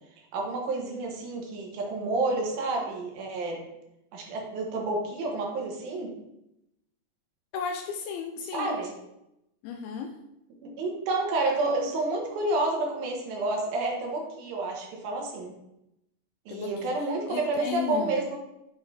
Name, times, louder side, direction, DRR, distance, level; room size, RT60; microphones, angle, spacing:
voice 1, 0.3-3.6 4.1-6.1 8.5-8.9 10.6-15.5 16.5-18.4, right 2 dB, 70° right, 0 dB, 2.8 m, -29 dB
voice 2, 7.5-8.7 9.6-10.2 16.5-16.9 17.3-18.2, left 6 dB, 80° left, 4 dB, 2.2 m, -34 dB
7.7 x 3.8 x 4.2 m, 0.86 s
omnidirectional pair, 4.7 m